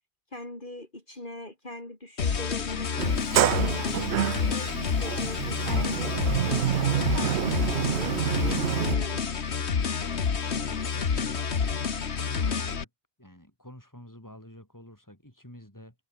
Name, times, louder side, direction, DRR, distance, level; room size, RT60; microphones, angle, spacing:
voice 1, 0.3-3.0 3.5-9.2, left 1 dB, 50° left, 5.2 m, -41 dB
sound 1, 2.2-12.8, left 6 dB, 85° left, 1.7 m, -29 dB
Sliding door, 3.0-9.0, right 11 dB, 85° right, 0.9 m, -28 dB
voice 2, 10.5-11.7 12.1-12.9 13.2-15.9, equal, 15° left, 7.9 m, -49 dB
omnidirectional pair, 1.1 m